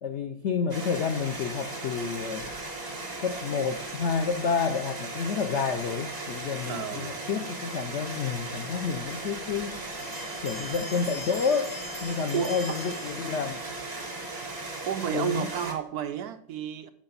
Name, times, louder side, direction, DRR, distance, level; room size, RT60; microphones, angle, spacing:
voice 1, 0.0-2.5 3.2-9.8 10.4-13.6 15.1-15.5, left 6 dB, 80° left, 7 dB, 0.6 m, -29 dB
sound 1, 0.7-15.7, right 2 dB, 25° right, 1.5 m, -37 dB
voice 2, 6.7-7.2 12.3-12.8 14.8-16.9, right 10 dB, 70° right, 9 dB, 1.0 m, -31 dB
Bell, 10.0-13.8, left 2 dB, 10° left, 4.1 m, -43 dB
10.0 x 5.8 x 4.0 m, 0.74 s
omnidirectional pair, 1.9 m